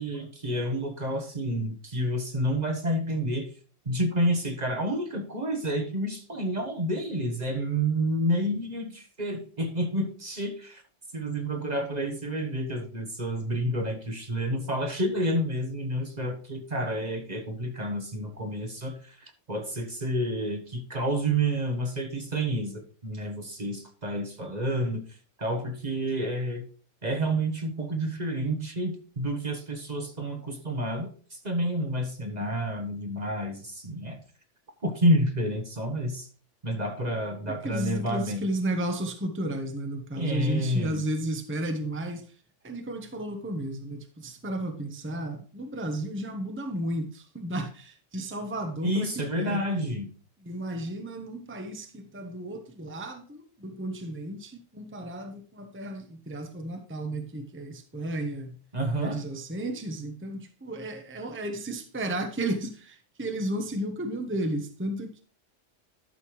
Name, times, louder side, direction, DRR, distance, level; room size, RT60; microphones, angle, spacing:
voice 1, 0.0-3.5 3.8-10.8 11.1-26.6 27.0-34.2 34.8-36.3 36.6-38.5 40.1-41.1 48.8-50.1 58.7-59.2, right 1 dB, 35° right, 1.3 m, -29 dB
voice 2, 37.5-42.2 42.6-49.9 50.4-58.6 59.0-65.2, right 1 dB, 10° right, 0.9 m, -33 dB
12.0 x 6.6 x 3.1 m
omnidirectional pair, 1.2 m